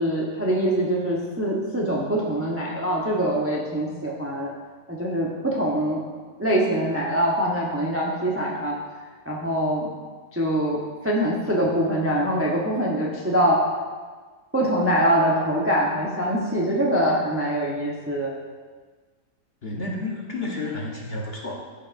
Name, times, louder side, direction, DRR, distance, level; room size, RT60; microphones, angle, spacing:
voice 1, 0.0-4.5 4.9-6.0 6.4-8.8 9.3-9.9 10.3-13.6 14.5-18.4, right 1 dB, 10° right, -3 dB, 0.7 m, -24 dB
voice 2, 19.6-21.5, left 2 dB, 40° left, -2 dB, 1.1 m, -31 dB
14.0 x 5.6 x 2.6 m, 1.4 s
omnidirectional pair, 1.8 m